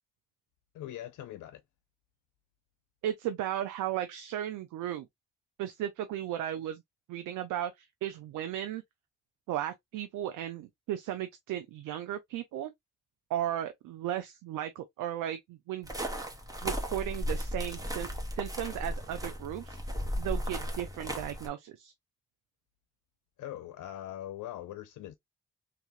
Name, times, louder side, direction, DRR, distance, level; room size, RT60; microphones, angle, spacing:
voice 1, 0.7-1.6 23.4-25.1, left 12 dB, 75° left, 0.5 m, -41 dB
voice 2, 3.0-5.1 5.6-6.8 7.1-8.8 9.5-12.7 13.3-15.9 16.6-18.1 18.4-19.8 20.2-21.9, right 11 dB, 90° right, 0.5 m, -35 dB
sound 1, 15.8-21.5, equal, 10° right, 1.3 m, -35 dB
3.3 x 2.4 x 2.8 m
supercardioid pair, 45°, 31 cm